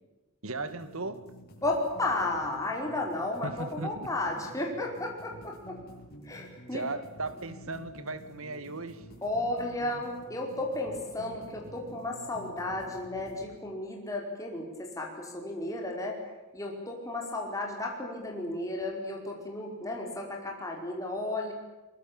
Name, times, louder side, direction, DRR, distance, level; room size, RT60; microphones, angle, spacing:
voice 1, 0.4-1.2 3.4-4.1 6.7-9.0, right 3 dB, 75° right, 12 dB, 2.1 m, -37 dB
sound 1, 0.6-13.5, equal, 50° left, 8.0 m, -50 dB
voice 2, 1.6-5.8 6.2-6.8 9.2-16.2 16.5-21.5, left 2 dB, 15° left, 0 dB, 5.1 m, -33 dB
24.0 x 23.0 x 9.0 m, 1.1 s
head